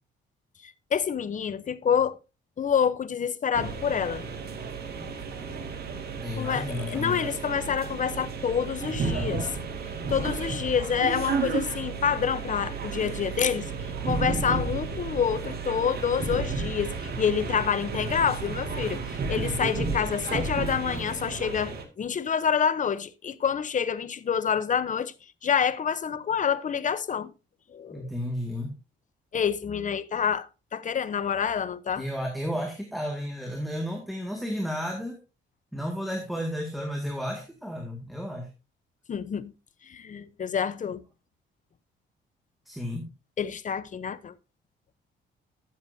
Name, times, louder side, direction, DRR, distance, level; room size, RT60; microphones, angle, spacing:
voice 1, 0.6-2.2 2.6-4.2 6.4-9.5 10.1-25.1 25.4-27.3 27.7-28.1 29.3-32.0 39.1-39.5 39.9-41.0 43.4-44.3, left 7 dB, 40° left, 0.8 m, -27 dB
sound 1, 3.5-21.8, right 4 dB, 50° right, 2.1 m, -32 dB
voice 2, 6.2-7.3 27.9-28.7 32.0-35.2 35.7-38.5 42.7-43.1, equal, ahead, 2.0 m, -32 dB
13.0 x 7.3 x 2.7 m
cardioid pair, 90°, 20 cm